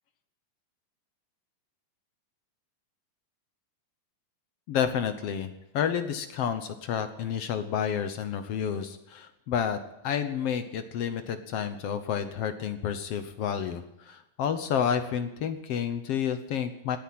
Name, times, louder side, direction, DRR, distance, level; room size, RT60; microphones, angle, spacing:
voice 1, 4.7-9.8 10.0-17.0, left 8 dB, 65° left, 9 dB, 1.5 m, -30 dB
19.0 x 9.8 x 7.6 m, 0.91 s
omnidirectional pair, 3.9 m